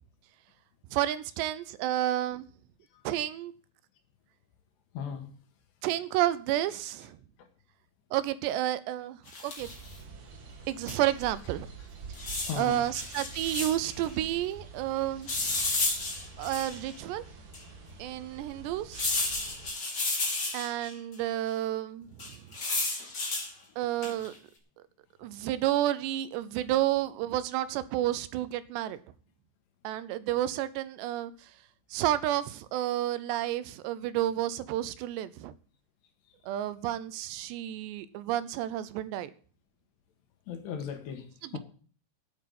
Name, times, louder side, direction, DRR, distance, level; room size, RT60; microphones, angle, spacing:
voice 1, 0.9-2.5 3.0-3.5 5.8-7.2 8.1-9.7 10.7-11.7 12.5-15.6 16.4-17.2 18.0-19.1 20.5-22.4 23.8-24.3 25.2-29.0 29.8-31.5 31.9-35.5 36.4-39.3 41.4-41.6, right 13 dB, 80° right, 2.8 m, -31 dB
voice 2, 4.9-5.3 7.4-7.5 12.5-12.9 23.0-23.1 40.5-41.6, left 7 dB, 75° left, 3.9 m, -37 dB
sound 1, 9.3-9.9 10.9-11.0 11.2-11.3 12.1-13.9 15.3-16.9 17.5-17.6 18.9-20.9 22.2-23.5 24.0-24.3, left 3 dB, 25° left, 3.1 m, -32 dB
sound 2, 9.6-19.7, right 4 dB, 55° right, 3.3 m, -47 dB
9.6 x 8.7 x 9.3 m
omnidirectional pair, 5.1 m